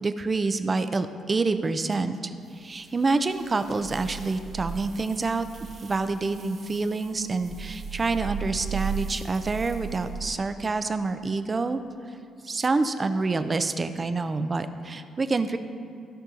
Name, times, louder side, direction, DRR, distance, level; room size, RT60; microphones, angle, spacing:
voice 1, 0.0-5.5 5.8-11.8 12.4-15.6, right 3 dB, 30° right, 10 dB, 0.5 m, -27 dB
sound 1, 2.5-10.4, right 6 dB, 65° right, 2.0 m, -37 dB
15.0 x 5.4 x 3.8 m, 2.4 s
cardioid pair, 90°, 0 cm